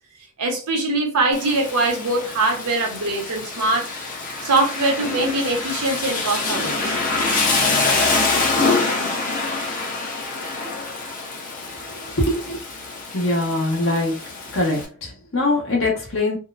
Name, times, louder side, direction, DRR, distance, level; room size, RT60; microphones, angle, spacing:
voice 1, 0.4-3.9 4.4-7.0, right 2 dB, 85° right, 0.8 m, -22 dB
Rain, 1.3-14.8, left 3 dB, 35° left, 0.6 m, -25 dB
voice 2, 12.2-12.6 13.1-14.2 14.5-16.4, left 2 dB, 60° left, 1.0 m, -22 dB
2.8 x 2.0 x 2.4 m
head